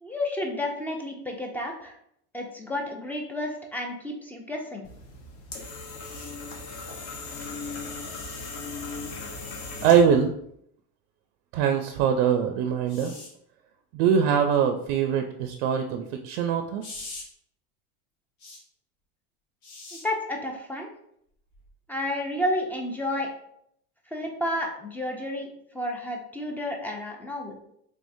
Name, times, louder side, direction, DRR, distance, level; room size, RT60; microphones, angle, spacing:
voice 1, 0.0-1.9 2.3-4.8 19.9-20.9 21.9-23.3 24.1-25.5 25.7-27.5, left 1 dB, 5° left, 1 dB, 0.5 m, -31 dB
sound 1, 4.8-10.2, left 3 dB, 45° left, 0.8 m, -38 dB
sound 2, 6.0-6.3 8.1-8.5 9.9-10.0 12.9-13.3 16.8-17.2 18.4-18.6 19.6-20.0 21.5-21.7, left 2 dB, 80° left, 1.4 m, -43 dB
voice 2, 9.8-10.3 11.5-13.1 13.9-16.8, right 7 dB, 70° right, 5 dB, 0.5 m, -22 dB
3.4 x 3.3 x 2.6 m, 0.71 s
supercardioid pair, 140°, 32 cm